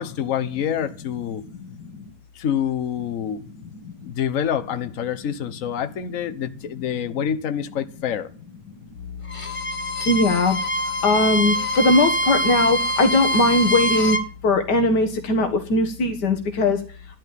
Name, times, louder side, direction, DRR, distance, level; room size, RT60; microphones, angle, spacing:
voice 1, 0.0-1.4 2.4-3.4 4.0-8.3, left 8 dB, 55° left, 1.4 m, -26 dB
voice 2, 1.6-2.0 3.7-3.9 10.1-14.2 14.4-16.8, left 2 dB, 85° left, 2.0 m, -20 dB
Bowed string instrument, 9.3-14.3, equal, 20° left, 1.2 m, -24 dB
12.0 x 10.5 x 7.5 m
omnidirectional pair, 1.7 m